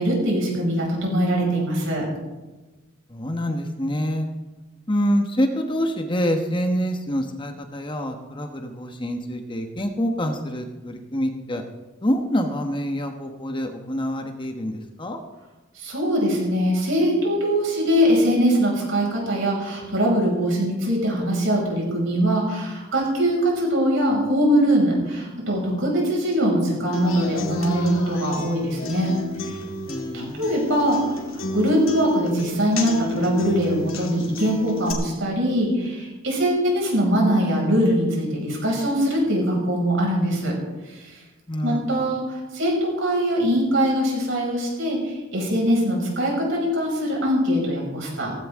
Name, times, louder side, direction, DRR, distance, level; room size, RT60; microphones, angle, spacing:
voice 1, 0.0-2.1 15.7-29.1 29.4-29.6 30.1-31.1 31.5-40.5 40.9-41.2 41.6-48.3, equal, 65° right, -2 dB, 5.8 m, -22 dB
voice 2, 3.1-4.3 4.9-11.6 12.0-15.2 29.9-30.5 41.5-42.0, equal, 25° left, 5 dB, 1.1 m, -26 dB
Human voice / Acoustic guitar, 26.9-34.9, left 2 dB, 80° left, 2.4 m, -32 dB
16.5 x 15.5 x 3.6 m, 1.2 s
head